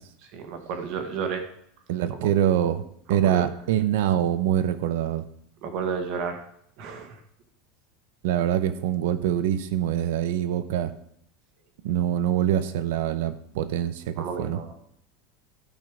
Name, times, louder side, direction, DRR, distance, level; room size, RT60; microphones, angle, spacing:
voice 1, 0.2-1.5 3.1-3.5 5.6-6.4 6.8-7.2 14.2-14.9, right 6 dB, 45° right, 6 dB, 1.7 m, -32 dB
voice 2, 1.9-2.8 3.1-5.2 8.2-10.9 11.8-14.6, right 10 dB, 75° right, 12 dB, 0.9 m, -24 dB
12.5 x 5.6 x 5.1 m, 0.69 s
supercardioid pair, 175°, 0 cm